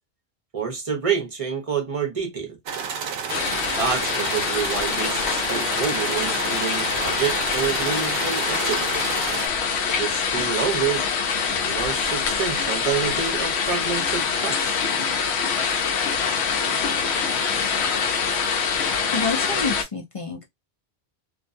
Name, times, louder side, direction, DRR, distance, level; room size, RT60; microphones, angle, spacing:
voice 1, 0.5-2.6 3.8-9.0 9.9-11.0 11.5-14.7, right 6 dB, 35° right, 0.7 m, -28 dB
sound 1, 2.7-9.5, right 6 dB, 70° right, 0.8 m, -31 dB
sound 2, 3.3-19.8, left 6 dB, 80° left, 0.9 m, -25 dB
voice 2, 18.8-20.5, left 4 dB, 40° left, 0.5 m, -29 dB
2.4 x 2.2 x 2.5 m
omnidirectional pair, 1.1 m